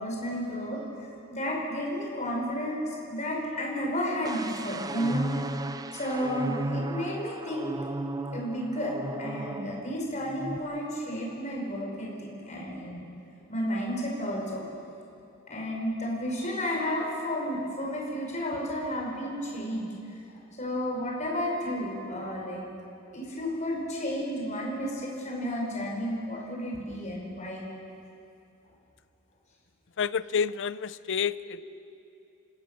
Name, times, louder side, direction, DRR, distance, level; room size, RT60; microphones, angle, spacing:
voice 1, 0.0-5.5 5.9-7.7 8.3-13.1 13.5-14.6 15.5-22.7 23.1-27.7, equal, 35° left, -2 dB, 5.3 m, -32 dB
sound 1, 4.2-10.0 10.3-10.6, right 2 dB, 15° right, 0.5 m, -34 dB
voice 2, 30.0-31.6, left 7 dB, 55° left, 17 dB, 0.5 m, -29 dB
28.5 x 16.5 x 6.9 m, 2.7 s
head